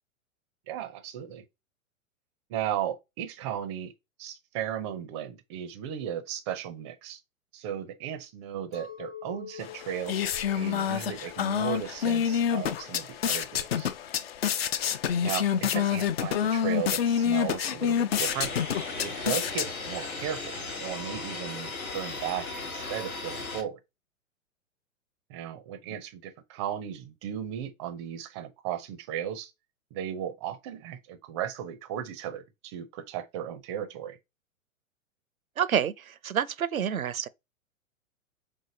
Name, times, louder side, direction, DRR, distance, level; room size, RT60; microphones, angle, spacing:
voice 1, 0.7-1.4 2.5-3.9 4.2-7.2 7.5-10.2 10.6-13.9 15.2-18.5 19.0-23.8 25.3-29.5 29.9-34.2, right 10 dB, 20° right, 0.5 m, -36 dB
Chink clink, 8.7-14.2, left 9 dB, 15° left, 0.8 m, -47 dB
sound 1, 9.6-20.1, left 8 dB, 45° left, 0.5 m, -28 dB
sound 2, 18.1-23.6, left 3 dB, 85° left, 1.3 m, -37 dB
voice 2, 35.6-37.3, right 8 dB, 80° right, 0.5 m, -28 dB
5.1 x 3.6 x 2.7 m
figure-of-eight pair, 105°, 41 cm